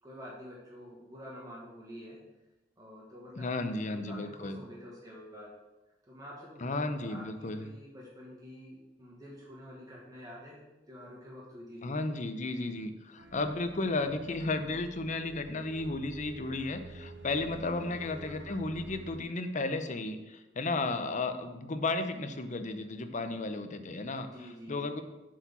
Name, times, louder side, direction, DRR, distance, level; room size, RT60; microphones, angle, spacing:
voice 1, 0.0-2.2 2.8-5.5 6.0-11.9 17.8-18.0 24.3-24.8, equal, 20° right, -4 dB, 1.5 m, -48 dB
voice 2, 3.4-4.6 6.6-7.7 11.8-24.3 24.7-25.0, left 2 dB, 40° left, 8 dB, 0.7 m, -34 dB
sound 1, 13.2-19.2, right 2 dB, 75° right, 0.7 m, -49 dB
7.4 x 4.7 x 7.1 m, 1.1 s
head